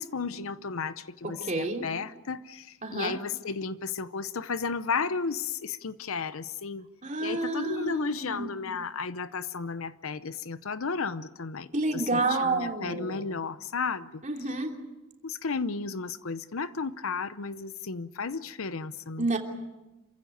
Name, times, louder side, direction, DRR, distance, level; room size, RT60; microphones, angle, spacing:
voice 1, 0.0-6.9 7.2-14.2 15.2-19.3, left 5 dB, 65° left, 14 dB, 0.8 m, -33 dB
voice 2, 1.5-1.9 2.8-3.2 7.0-8.5 11.7-13.2 14.2-14.8 19.2-19.4, right 2 dB, 35° right, 2 dB, 3.1 m, -29 dB
27.5 x 15.5 x 9.3 m, 1.0 s
head